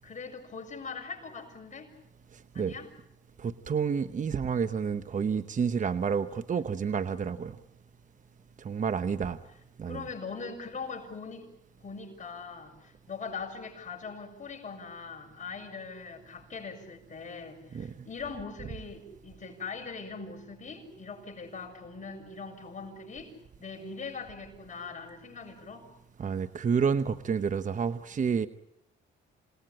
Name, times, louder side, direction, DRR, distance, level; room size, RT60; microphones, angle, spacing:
voice 1, 0.0-1.9 2.5-2.9 6.5-6.6 9.8-11.5 11.8-23.3 23.6-25.9, left 5 dB, 40° left, 3 dB, 7.1 m, -41 dB
voice 2, 3.4-7.6 8.6-9.4 9.8-10.0 17.7-17.9 26.2-28.5, right 6 dB, 40° right, 11 dB, 1.0 m, -29 dB
28.0 x 20.0 x 8.8 m, 0.85 s
cardioid pair, 90°, 20 cm